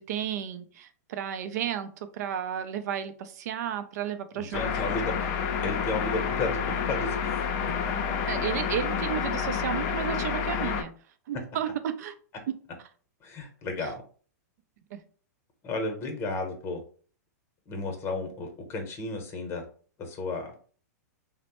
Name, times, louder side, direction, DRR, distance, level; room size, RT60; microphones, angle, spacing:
voice 1, 0.0-4.7 8.3-10.9 11.3-12.1 13.8-13.9 14.9-15.0, right 9 dB, 65° right, 9 dB, 0.5 m, -33 dB
voice 2, 4.3-5.3 5.6-7.4 13.2-14.0 15.6-16.8 17.7-19.6 20.0-20.5, left 3 dB, 30° left, 4 dB, 0.8 m, -33 dB
sound 1, 4.5-10.8, left 6 dB, 45° left, 0.5 m, -29 dB
3.1 x 2.1 x 2.9 m, 0.42 s
hypercardioid pair, 130°, 9 cm